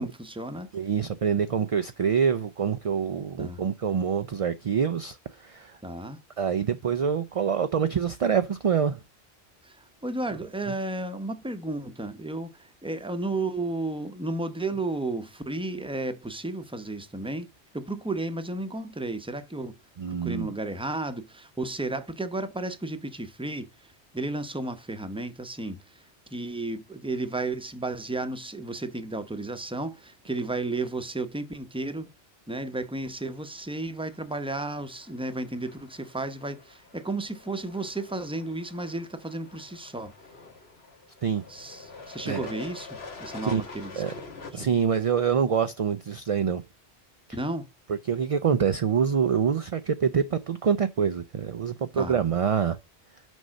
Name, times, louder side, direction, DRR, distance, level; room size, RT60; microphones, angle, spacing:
voice 1, 0.0-0.7 3.4-3.6 5.8-6.2 9.6-17.5 17.7-19.7 20.1-32.1 32.5-40.1 41.5-44.0 44.6-44.7 47.3-47.7 51.9-52.2, right 2 dB, 5° right, 0.7 m, -33 dB
voice 2, 0.7-5.8 6.4-9.0 20.0-20.5 41.2-41.4 42.3-42.4 43.4-43.6 44.0-44.1 44.5-46.6 47.9-52.8, right 7 dB, 50° right, 0.4 m, -26 dB
sound 1, 33.2-44.5, left 4 dB, 70° left, 1.7 m, -46 dB
6.3 x 5.4 x 6.3 m
omnidirectional pair, 1.1 m